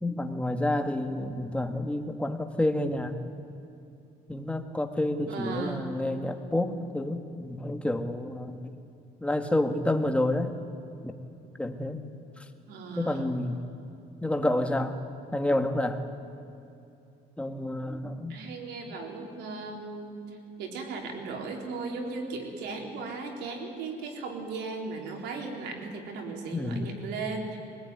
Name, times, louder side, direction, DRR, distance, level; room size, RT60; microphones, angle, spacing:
voice 1, 0.0-3.2 4.3-8.7 9.2-10.5 11.0-11.1 11.6-12.1 13.0-13.6 14.2-14.9 15.3-16.0 17.4-18.4 26.5-26.9, left 1 dB, 5° left, 6 dB, 1.8 m, -29 dB
voice 2, 5.2-5.9 12.7-13.3 18.3-20.1 20.6-27.6, right 4 dB, 85° right, 2 dB, 3.9 m, -36 dB
22.0 x 19.5 x 9.5 m, 2.7 s
cardioid pair, 110°, 17 cm